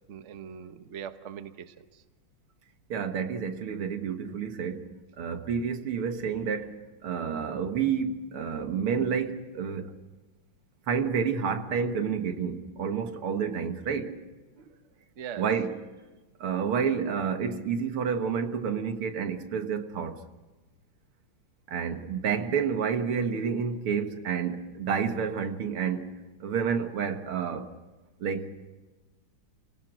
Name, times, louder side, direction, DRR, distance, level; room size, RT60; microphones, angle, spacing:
voice 1, 0.1-2.0 15.2-15.5, right 8 dB, 45° right, 1.1 m, -41 dB
voice 2, 2.9-9.9 10.9-14.2 15.4-15.7 16.4-20.2 21.7-27.7 28.2-28.6, right 6 dB, 90° right, 2.3 m, -29 dB
28.5 x 18.5 x 6.2 m
omnidirectional pair, 2.3 m